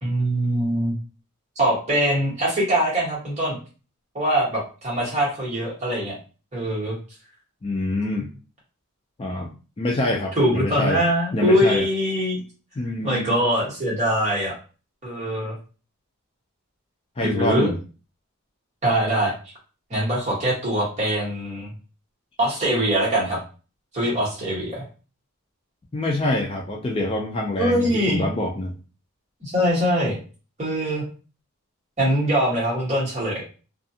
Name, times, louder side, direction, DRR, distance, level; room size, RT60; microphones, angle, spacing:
voice 1, 0.0-0.9 1.6-3.6 4.1-6.2 6.5-7.0 10.4-12.4 13.0-14.5 15.0-15.5 17.2-17.7 18.8-19.3 19.9-21.7 22.4-23.4 23.9-24.8 27.6-28.2 29.4-30.1 30.6-31.0 32.0-33.4, equal, 30° right, -5 dB, 1.3 m, -22 dB
voice 2, 7.6-8.3 9.2-9.5 9.8-11.0 11.3-11.9 12.8-13.3 17.2-17.8 25.9-28.7, left 1 dB, 25° left, -1 dB, 0.4 m, -25 dB
2.4 x 2.4 x 2.7 m, 0.35 s
head